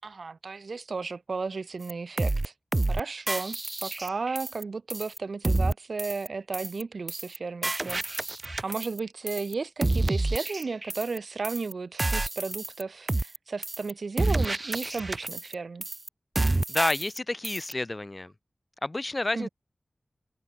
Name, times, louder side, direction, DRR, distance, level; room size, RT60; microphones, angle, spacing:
voice 1, 0.0-2.5 2.9-8.3 8.6-15.8 19.3-19.5, right 4 dB, 70° right, 4.9 m, -34 dB
sound 1, 1.9-2.0 2.2-2.5 2.7-3.0 3.3-4.6 4.9-5.2 5.4-5.7 6.0-6.3 6.5-6.8 7.1-7.4 7.6-9.0 9.3-9.5 9.8-11.2 11.4-11.7 12.0-12.8 13.1-13.4 13.6-13.9 14.2-15.5 15.8-16.1 16.3-17.2 17.4-17.7, right 2 dB, 35° right, 0.5 m, -28 dB
voice 2, 16.7-18.3 18.8-19.5, left 2 dB, 30° left, 2.1 m, -29 dB
wide cardioid pair, 75°, 0 cm